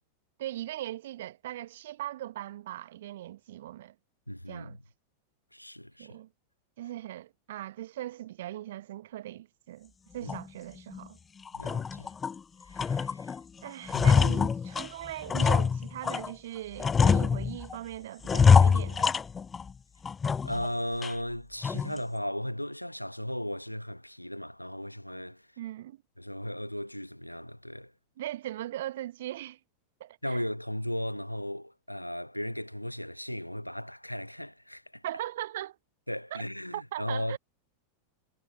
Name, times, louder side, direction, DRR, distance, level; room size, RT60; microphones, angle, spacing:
voice 1, 0.4-3.9 4.5-4.8 6.0-6.3 6.8-11.2 13.6-19.2 25.6-26.0 28.2-29.6 30.0-30.4 35.0-35.8 36.3-36.4 36.7-37.4, right 13 dB, 55° right, 1.4 m, -39 dB
voice 2, 4.3-4.8 5.5-6.1 10.2-10.3 11.5-12.1 12.7-13.3 13.9-14.1 20.4-25.4 26.2-27.9 30.2-35.0 36.1-37.4, equal, 90° left, 1.4 m, -36 dB
sound 1, 10.3-10.4 10.9-11.0 11.5-12.4 12.8-13.4 13.7-16.3 16.8-17.8 18.2-19.7 20.0-20.7 21.0-21.1 21.6-22.0, left 6 dB, 20° left, 0.5 m, -24 dB
figure-of-eight pair, 90°, 0 cm